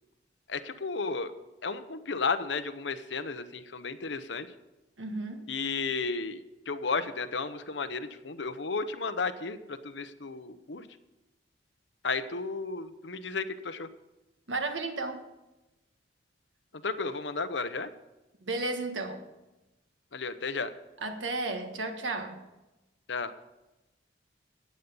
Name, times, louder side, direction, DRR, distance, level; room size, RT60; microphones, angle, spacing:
voice 1, 0.5-1.3 1.6-4.5 5.5-10.9 12.0-13.9 16.8-17.9 20.1-20.7 23.1-23.3, left 4 dB, 75° left, 10 dB, 0.9 m, -33 dB
voice 2, 5.0-5.5 14.5-15.2 18.5-19.2 21.0-22.4, right 2 dB, 90° right, 6 dB, 1.6 m, -33 dB
15.0 x 9.5 x 5.5 m, 1.0 s
head